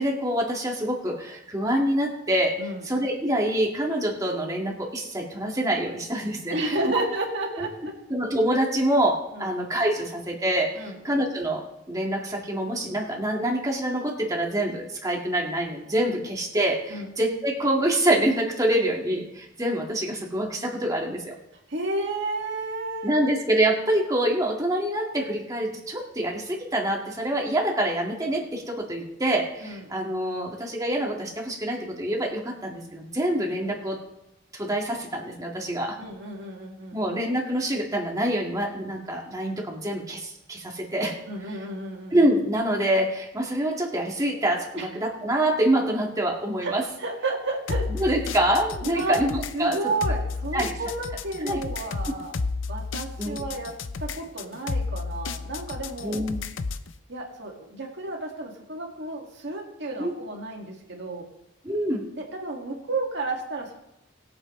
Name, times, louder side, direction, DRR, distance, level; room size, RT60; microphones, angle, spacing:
voice 1, 0.0-2.6 2.8-6.8 7.6-7.7 8.1-21.4 23.0-34.0 34.5-36.0 36.9-41.2 42.1-46.8 47.9-49.8 50.5-50.7 51.4-51.6 53.2-53.4 56.0-56.4 60.0-60.1 61.6-62.1, right 1 dB, 20° right, 0 dB, 1.9 m, -26 dB
voice 2, 6.5-8.0 9.3-9.4 10.8-11.0 16.9-17.1 21.7-23.4 29.6-29.8 36.0-37.1 41.3-42.2 44.8-44.9 46.6-47.9 48.8-49.2 49.5-52.3 52.7-53.7 54.0-56.3 57.1-61.3 62.2-63.8, right 2 dB, 60° right, 0 dB, 2.1 m, -32 dB
sound 1, 47.7-56.9, left 4 dB, 70° left, 0.6 m, -32 dB
20.5 x 7.7 x 3.2 m, 0.87 s
head